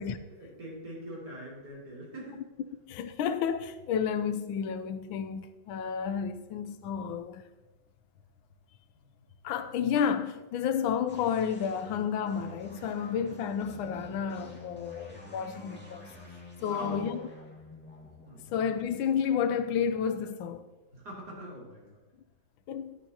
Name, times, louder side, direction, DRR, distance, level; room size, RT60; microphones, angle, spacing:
voice 1, 0.3-2.5 9.0-9.3 16.7-17.0 18.2-18.5 20.9-22.0, right 1 dB, 55° right, 3.5 m, -43 dB
voice 2, 2.9-7.4 9.4-16.1 16.6-17.2 18.5-20.7 22.7-23.0, left 7 dB, 90° left, 1.5 m, -31 dB
sound 1, 11.1-20.5, left 1 dB, 5° left, 2.0 m, -49 dB
11.5 x 10.0 x 2.8 m
omnidirectional pair, 2.1 m